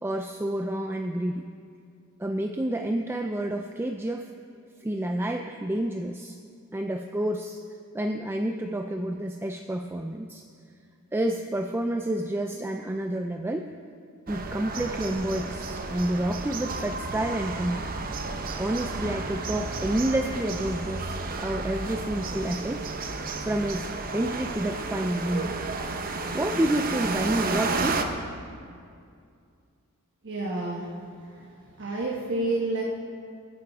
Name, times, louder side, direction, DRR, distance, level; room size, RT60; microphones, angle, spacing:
voice 1, 0.0-1.5 2.2-4.3 4.8-6.4 6.7-7.6 7.9-10.4 11.1-13.7 14.3-17.9 18.6-22.8 23.4-25.6 26.3-28.0, right 1 dB, 10° right, 4 dB, 0.3 m, -29 dB
sound 1, 14.3-28.0, right 3 dB, 40° right, 0.8 m, -32 dB
voice 2, 30.2-30.9 31.4-31.5 31.8-32.8, right 2 dB, 55° right, -3 dB, 1.3 m, -29 dB
21.5 x 9.7 x 3.6 m, 2.3 s
head